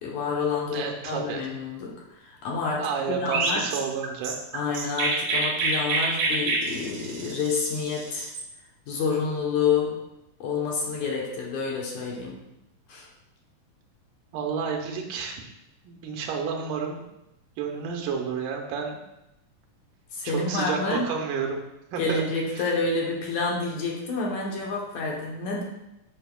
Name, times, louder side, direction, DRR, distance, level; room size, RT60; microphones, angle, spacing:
voice 1, 0.0-3.7 4.5-8.3 8.9-10.0 10.4-12.4 12.9-13.1 20.1-21.1 22.0-25.6, left 4 dB, 70° left, -2 dB, 2.2 m, -28 dB
voice 2, 0.7-1.5 2.8-4.3 14.3-15.4 15.8-17.1 17.6-19.0 20.2-21.6 21.9-22.2 22.5-22.7, right 6 dB, 85° right, 2 dB, 2.3 m, -30 dB
Chirp tweet, 3.3-8.5, right 3 dB, 70° right, 2.0 m, -27 dB
7.7 x 5.5 x 2.2 m, 0.90 s
omnidirectional pair, 3.8 m